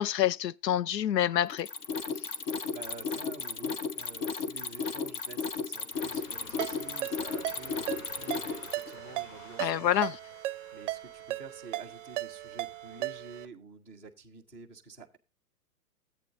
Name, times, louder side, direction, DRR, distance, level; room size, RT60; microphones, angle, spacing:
voice 1, 0.0-1.7 9.6-10.2, left 11 dB, 85° left, 0.7 m, -27 dB
Mechanisms, 1.5-8.9, left 5 dB, 35° left, 1.1 m, -34 dB
voice 2, 2.5-10.1 10.7-15.2, right 4 dB, 5° left, 0.4 m, -49 dB
sound 1, 5.9-13.5, left 4 dB, 60° left, 2.2 m, -53 dB
Ringtone, 6.6-13.5, right 16 dB, 45° right, 0.6 m, -37 dB
14.0 x 8.5 x 2.6 m
hypercardioid pair, 140°, 49 cm